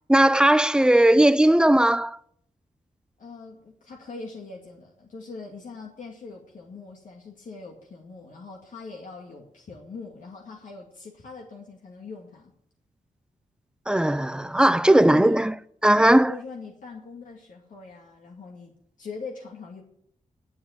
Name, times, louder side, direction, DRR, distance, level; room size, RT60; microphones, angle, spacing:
voice 1, 0.1-2.2 13.9-15.5 15.8-16.3, right 1 dB, 5° right, 0.4 m, -18 dB
voice 2, 3.2-12.5 14.8-15.5 16.3-19.8, left 4 dB, 75° left, 2.2 m, -41 dB
11.5 x 7.3 x 9.6 m
wide cardioid pair, 120°, 13 cm